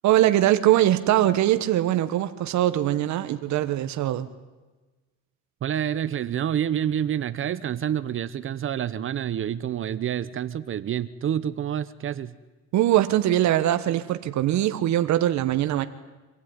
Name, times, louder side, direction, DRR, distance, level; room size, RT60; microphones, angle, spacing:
voice 1, 0.0-4.3 12.7-15.9, right 13 dB, 55° right, 10 dB, 1.4 m, -22 dB
voice 2, 5.6-12.3, right 10 dB, 40° right, 14 dB, 0.9 m, -28 dB
26.5 x 16.5 x 9.8 m, 1.2 s
cardioid pair, 135°, 33 cm